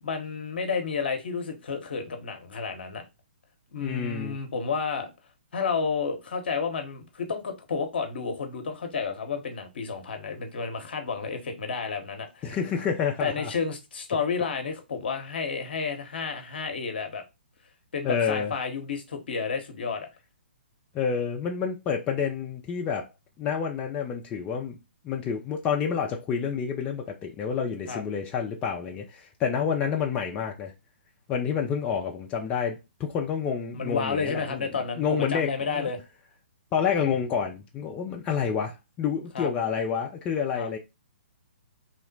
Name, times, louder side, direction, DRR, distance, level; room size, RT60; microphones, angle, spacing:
voice 1, 0.0-3.0 3.7-5.1 5.5-12.6 13.2-17.2 17.9-20.1 27.9-28.0 33.7-36.0 39.3-39.5 40.5-40.7, left 5 dB, 65° left, 0.9 m, -31 dB
voice 2, 3.8-4.4 12.4-13.5 18.0-18.5 20.9-23.1 23.4-24.8 25.0-30.7 31.3-34.7 35.0-35.9 36.7-40.8, left 7 dB, 20° left, 0.5 m, -29 dB
2.8 x 2.1 x 3.9 m
figure-of-eight pair, 130°, 6 cm